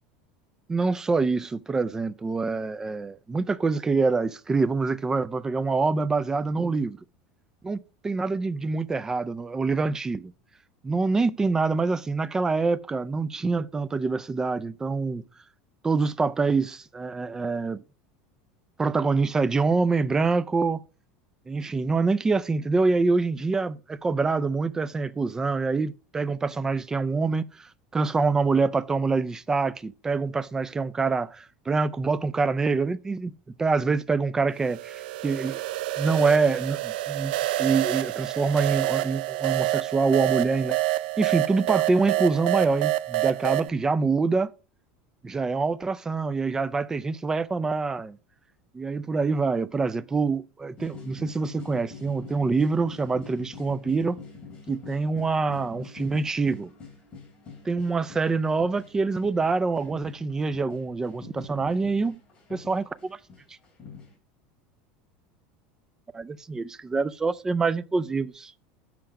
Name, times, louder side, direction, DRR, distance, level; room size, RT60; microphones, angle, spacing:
voice 1, 0.7-7.0 7.6-10.3 10.8-15.2 15.8-17.8 18.8-20.8 21.5-33.3 33.6-35.6 36.0-37.3 37.6-44.5 45.2-48.2 48.7-54.2 54.7-56.7 57.7-62.2 62.5-63.2 66.1-68.5, right 4 dB, 10° right, 0.3 m, -25 dB
sound 1, 34.6-43.7, right 17 dB, 80° right, 0.4 m, -28 dB
sound 2, 50.8-64.2, left 5 dB, 20° left, 2.6 m, -45 dB
7.6 x 5.7 x 4.9 m
supercardioid pair, 150°, 5 cm